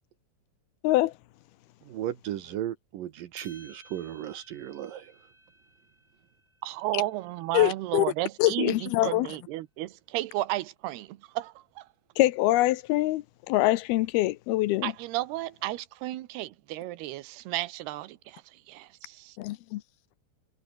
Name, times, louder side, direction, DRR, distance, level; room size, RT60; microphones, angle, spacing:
voice 1, 1.9-5.1, right 12 dB, 65° right, 2.6 m, -35 dB
sound 1, 3.4-7.8, right 1 dB, 5° right, 3.1 m, -56 dB
voice 2, 6.6-11.9 14.8-19.4, right 16 dB, 80° right, 3.0 m, -33 dB
voice 3, 7.5-8.1 8.4-9.3 12.2-14.9 19.4-19.8, left 17 dB, 80° left, 2.6 m, -24 dB
omnidirectional pair, 4.7 m